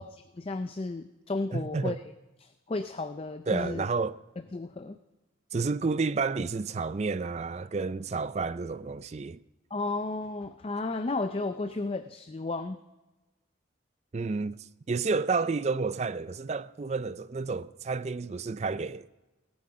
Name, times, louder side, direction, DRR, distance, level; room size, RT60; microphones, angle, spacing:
voice 1, 0.0-2.0 2.4-3.9 4.5-5.0 9.7-12.8, left 3 dB, 30° left, 0.4 m, -33 dB
voice 2, 1.5-2.0 3.5-4.2 5.5-9.4 14.1-14.6 14.9-19.1, right 4 dB, 35° right, 0.4 m, -30 dB
18.5 x 8.7 x 5.0 m
head